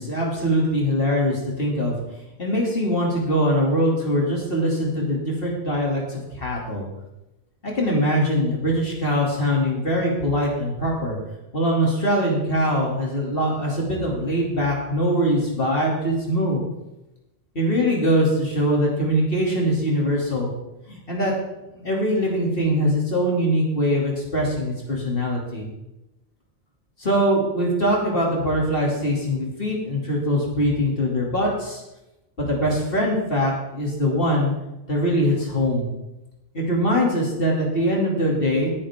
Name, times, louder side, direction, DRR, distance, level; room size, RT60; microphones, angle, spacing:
voice 1, 0.0-1.9 2.4-6.8 7.6-11.2 11.5-16.6 17.5-20.5 20.9-21.3 21.8-25.7 27.0-31.8 32.4-34.5 34.9-35.9 36.5-38.7, equal, 50° left, -2 dB, 3.1 m, -22 dB
17.5 x 10.0 x 3.7 m, 0.95 s
omnidirectional pair, 1.2 m